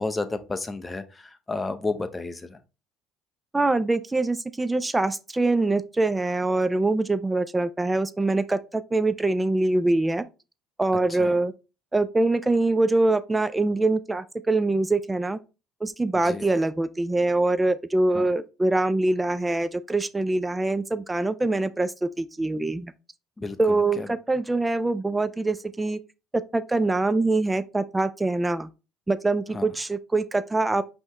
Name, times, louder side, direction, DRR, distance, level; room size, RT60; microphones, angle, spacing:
voice 1, 0.0-2.6 11.2-11.3 16.2-16.4 18.1-18.3 23.4-23.6 24.0-24.1 29.5-29.7, left 3 dB, 15° left, 0.7 m, -31 dB
voice 2, 3.5-10.2 10.8-11.5 11.9-15.4 15.8-22.9 23.6-26.0 26.3-28.7 29.1-30.8, right 2 dB, 15° right, 0.4 m, -24 dB
5.4 x 3.0 x 3.2 m
supercardioid pair, 95°, 0 cm